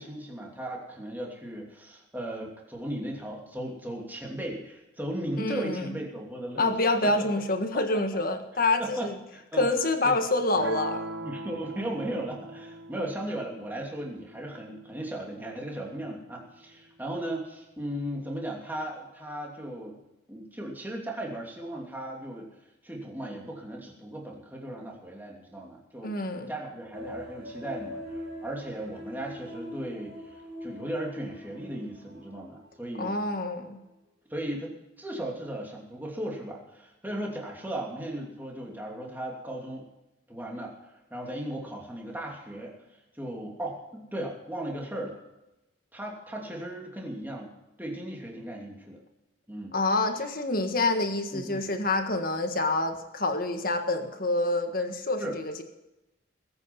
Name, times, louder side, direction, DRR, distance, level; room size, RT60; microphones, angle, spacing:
voice 1, 0.0-6.7 7.0-7.3 8.5-9.7 10.0-10.1 11.2-20.0 20.3-22.5 22.8-26.2 26.5-33.1 34.3-39.9 40.3-42.7 43.1-45.2 45.9-47.5 47.8-49.0 49.5-49.7 51.3-51.6 55.2-55.4, right 1 dB, 10° right, -1 dB, 2.9 m, -36 dB
voice 2, 5.4-5.9 6.6-9.1 9.5-11.0 26.0-26.5 33.0-33.8 49.7-55.6, left 2 dB, 45° left, 6 dB, 1.6 m, -27 dB
sound 1, 10.6-16.6, right 2 dB, 65° right, 1.4 m, -41 dB
sound 2, 26.9-33.1 33.5-33.6, left 1 dB, 85° right, 5.8 m, -43 dB
20.5 x 9.0 x 5.6 m, 0.96 s
head